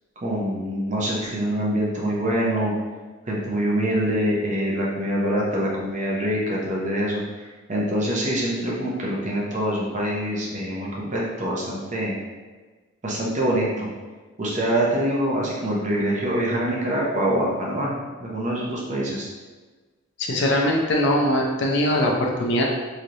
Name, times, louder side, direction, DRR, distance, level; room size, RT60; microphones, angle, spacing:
voice 1, 0.2-2.7 3.3-7.2 7.7-12.1 13.0-13.9 14.4-17.9 18.2-19.3, right 1 dB, 35° right, -4 dB, 0.6 m, -25 dB
voice 2, 20.2-22.6, left 1 dB, 55° left, 0 dB, 0.5 m, -21 dB
3.1 x 2.8 x 2.5 m, 1.3 s
head